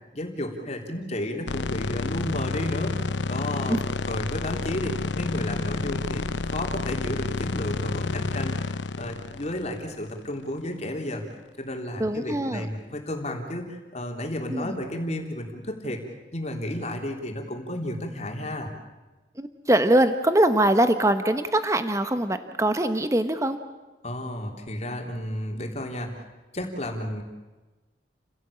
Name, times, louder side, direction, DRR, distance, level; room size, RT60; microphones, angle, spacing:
voice 1, 0.1-3.8 4.1-16.0 16.3-18.7 24.0-26.2 26.5-27.2, left 1 dB, 40° left, 2 dB, 3.6 m, -32 dB
sound 1, 1.5-10.7, left 3 dB, 80° left, 0.8 m, -30 dB
voice 2, 12.0-12.7 14.5-14.8 19.4-23.6, right 1 dB, 15° right, 9 dB, 1.0 m, -23 dB
29.5 x 17.5 x 8.7 m, 1.2 s
head